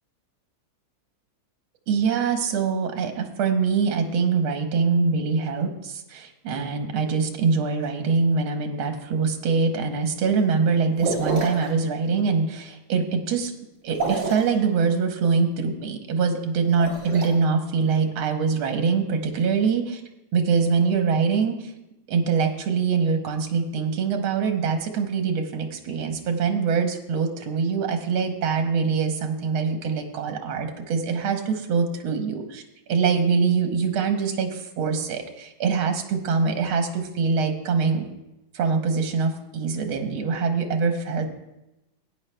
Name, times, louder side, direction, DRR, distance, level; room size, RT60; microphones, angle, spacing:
voice 1, 1.9-13.5 13.8-20.0 20.3-21.7 22.1-32.6 32.9-38.1 38.5-41.2, right 5 dB, 80° right, 5 dB, 1.8 m, -24 dB
sound 1, 11.0-11.7 13.9-14.5 16.6-17.3, right 3 dB, 55° right, 3.3 m, -27 dB
16.5 x 9.4 x 2.2 m, 0.93 s
omnidirectional pair, 2.3 m